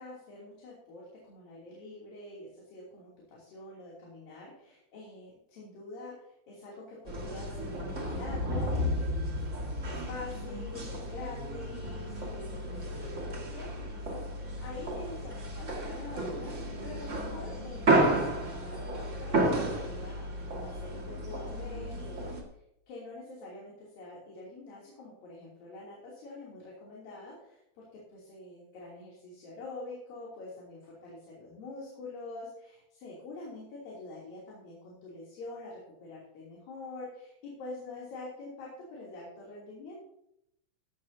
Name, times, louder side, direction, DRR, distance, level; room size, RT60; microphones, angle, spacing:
voice 1, 0.0-22.4 22.9-40.1, left 2 dB, 70° left, -5 dB, 4.6 m, -46 dB
sound 1, 7.1-22.4, right 1 dB, 30° right, 1.4 m, -32 dB
16.5 x 11.5 x 2.8 m, 0.78 s
omnidirectional pair, 4.2 m